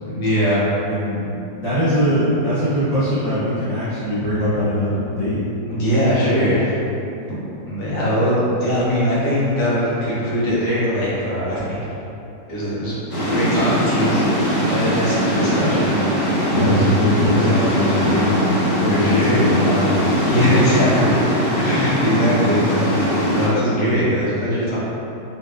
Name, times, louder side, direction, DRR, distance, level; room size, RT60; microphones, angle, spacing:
voice 1, 0.0-0.7 5.7-6.7 7.7-11.8 12.5-13.0 13.3-14.2 14.6-16.0 16.4-16.5 17.3-17.6 18.0-18.1 18.9-19.5 20.3-21.2 21.6-24.8, equal, 80° left, -9 dB, 1.6 m, -21 dB
voice 2, 0.9-1.3 1.6-5.4 16.5-20.0 20.3-20.5, equal, 35° right, -15 dB, 0.6 m, -21 dB
sound 1, 13.1-23.5, equal, 35° left, 0.9 m, -21 dB
4.4 x 2.3 x 2.4 m, 2.9 s
omnidirectional pair, 1.9 m